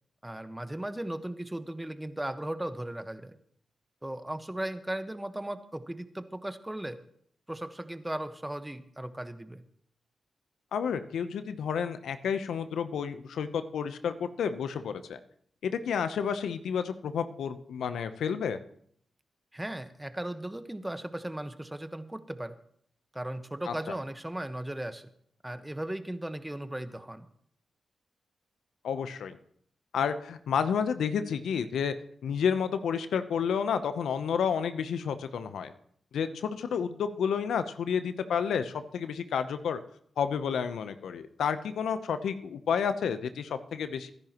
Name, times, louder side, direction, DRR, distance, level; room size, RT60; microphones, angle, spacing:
voice 1, 0.2-3.4 4.0-7.0 7.5-9.6 19.5-22.6 23.1-25.1 25.4-27.3, right 1 dB, 15° right, 10 dB, 1.2 m, -37 dB
voice 2, 10.7-15.2 15.6-18.6 23.7-23.8 28.8-29.4 29.9-31.9 32.2-35.7 36.1-39.8 40.2-44.1, left 7 dB, 80° left, 10 dB, 0.8 m, -30 dB
23.5 x 11.0 x 3.0 m, 0.64 s
supercardioid pair, 45°, 0 cm